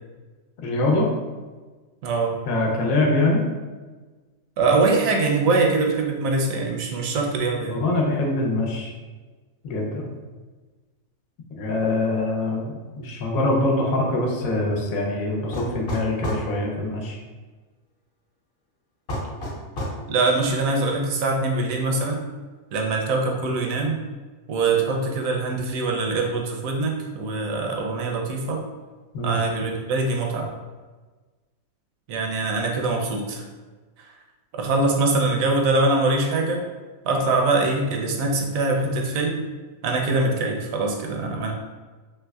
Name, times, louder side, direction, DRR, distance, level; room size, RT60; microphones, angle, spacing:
voice 1, 0.6-1.1 2.5-3.4 7.7-8.9 9.6-10.1 11.5-17.2 29.1-29.4, left 2 dB, 80° left, 0 dB, 1.1 m, -24 dB
voice 2, 2.0-2.4 4.6-7.8 20.1-22.2 22.7-24.0 24.5-28.6 29.2-30.5 32.1-33.5 34.0-34.1 34.6-36.6 37.0-39.4 39.8-41.5, right 3 dB, 75° right, 1 dB, 1.0 m, -23 dB
sound 1, 15.5-16.5 19.1-20.0, equal, 50° left, 0.9 m, -29 dB
3.2 x 3.1 x 2.3 m, 1.3 s
omnidirectional pair, 1.5 m